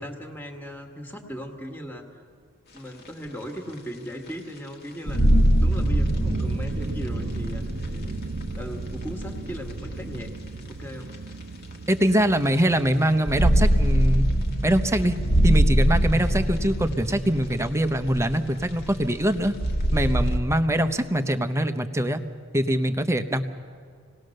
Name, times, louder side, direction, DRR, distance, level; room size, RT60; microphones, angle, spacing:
voice 1, 0.0-2.0 2.7-5.2 5.6-8.2 8.5-10.3 10.7-11.1, equal, 10° left, 2 dB, 1.8 m, -38 dB
sound 1, 2.8-2.9 3.6-3.7 4.3-4.4 5.1-10.2 11.1-11.2 13.0-20.4, right 1 dB, 45° left, 1.6 m, -24 dB
sound 2, 5.0-13.3, right 3 dB, 45° right, 0.8 m, -35 dB
voice 2, 11.9-14.2 14.6-15.2 15.4-19.5 19.9-22.2 22.5-23.4, right 1 dB, 15° right, 8 dB, 0.9 m, -23 dB
27.5 x 18.5 x 6.6 m, 2.1 s
head